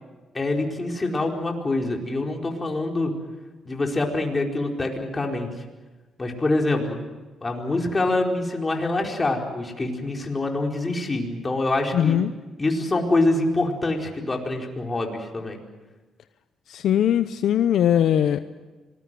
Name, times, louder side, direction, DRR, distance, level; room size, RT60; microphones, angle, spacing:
voice 1, 0.3-3.1 3.6-5.5 6.2-7.0 7.4-12.2 12.6-15.6, left 2 dB, 25° left, 1 dB, 4.6 m, -25 dB
voice 2, 11.9-12.3 16.7-18.4, left 10 dB, 70° left, 11 dB, 0.8 m, -20 dB
26.0 x 20.5 x 7.7 m, 1.2 s
cardioid pair, 90°, 0 cm